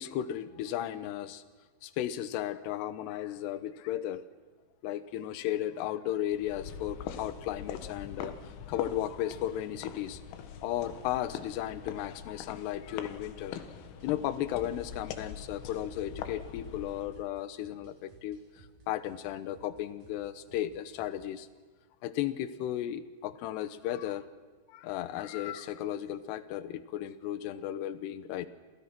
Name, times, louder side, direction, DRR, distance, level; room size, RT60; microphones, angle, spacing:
voice 1, 0.0-1.4 1.8-4.2 4.8-8.3 8.7-10.2 10.6-13.7 14.0-21.5 22.0-24.3 24.7-28.5, left 12 dB, 70° left, 13 dB, 2.9 m, -35 dB
sound 1, 6.3-17.2, left 8 dB, 90° left, 4.1 m, -43 dB
sound 2, 13.8-21.4, right 3 dB, 50° right, 4.5 m, -59 dB
29.5 x 28.0 x 6.1 m, 1.4 s
omnidirectional pair, 5.6 m